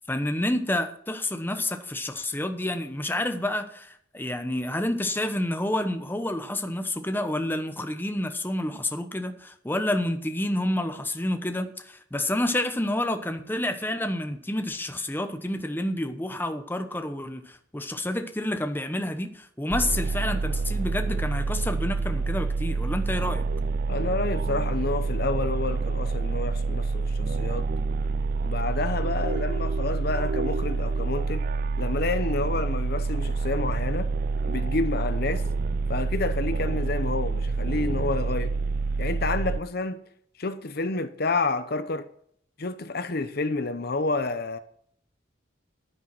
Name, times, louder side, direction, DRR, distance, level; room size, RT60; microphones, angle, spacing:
voice 1, 0.1-23.4, left 1 dB, 10° left, 1.0 m, -29 dB
sound 1, 19.7-39.6, right 4 dB, 45° right, 0.4 m, -27 dB
voice 2, 23.9-27.7 28.4-31.5 31.8-34.1 34.5-35.5 35.9-38.5 39.0-40.0 40.4-42.1 42.6-44.6, left 3 dB, 50° left, 0.8 m, -29 dB
10.5 x 9.7 x 6.0 m
head